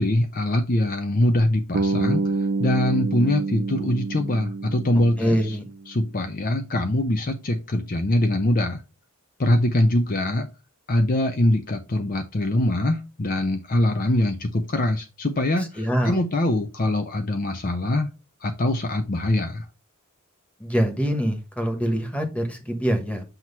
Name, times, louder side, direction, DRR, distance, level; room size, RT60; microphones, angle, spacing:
voice 1, 0.0-2.2 2.6-5.6 5.9-8.8 9.4-10.5 10.9-18.1 18.4-19.7, left 1 dB, 40° left, 7 dB, 0.6 m, -23 dB
Bass guitar, 1.7-5.8, right 3 dB, 50° right, 0.5 m, -27 dB
voice 2, 5.2-5.7 15.6-16.2 20.6-23.2, equal, 5° left, 5 dB, 1.4 m, -24 dB
7.9 x 3.0 x 5.5 m, 0.29 s
head